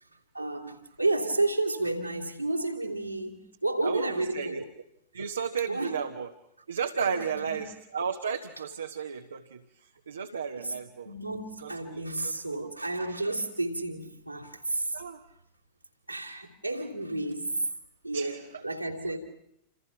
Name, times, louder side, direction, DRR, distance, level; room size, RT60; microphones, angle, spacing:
voice 1, 0.3-4.6 5.7-5.9 7.0-7.7 10.6-10.8 11.0-15.0 16.1-17.5 18.0-19.2, right 2 dB, 85° right, 3.1 m, -31 dB
voice 2, 3.8-4.6 5.1-6.3 6.7-11.1 11.6-12.8 14.9-15.3 18.1-18.6 19.0-19.2, right 6 dB, 70° right, 1.3 m, -34 dB
28.5 x 28.0 x 5.8 m
figure-of-eight pair, 90°, 0 cm